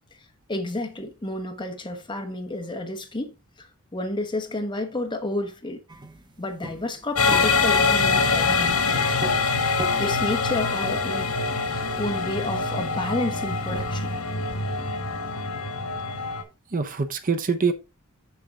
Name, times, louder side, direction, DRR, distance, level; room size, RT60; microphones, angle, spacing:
voice 1, 0.5-5.8 6.4-9.3 10.0-11.3 11.6-14.1, left 2 dB, 20° left, 1.2 m, -31 dB
sound 1, 5.9-14.2, right 2 dB, 20° right, 0.9 m, -40 dB
sound 2, 7.2-16.4, left 4 dB, 80° left, 1.8 m, -24 dB
voice 2, 16.7-17.7, right 5 dB, 40° right, 0.8 m, -26 dB
6.8 x 6.3 x 3.7 m
head